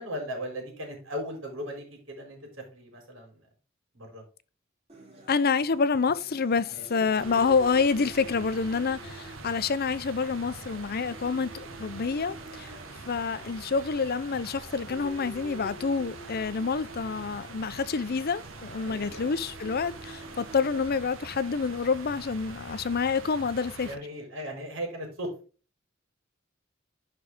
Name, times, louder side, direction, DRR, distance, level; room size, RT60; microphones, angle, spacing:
voice 1, 0.0-2.4 2.7-3.4 3.9-4.2 6.7-7.1 18.8-19.3 23.8-25.3, equal, 75° right, 4.0 m, -37 dB
sound 1, 4.9-20.9, right 1 dB, 35° right, 3.9 m, -49 dB
voice 2, 5.3-12.7 13.1-23.9, left 5 dB, 50° left, 0.6 m, -28 dB
sound 2, 7.2-24.0, right 3 dB, 90° right, 1.6 m, -44 dB
11.0 x 4.7 x 3.7 m
head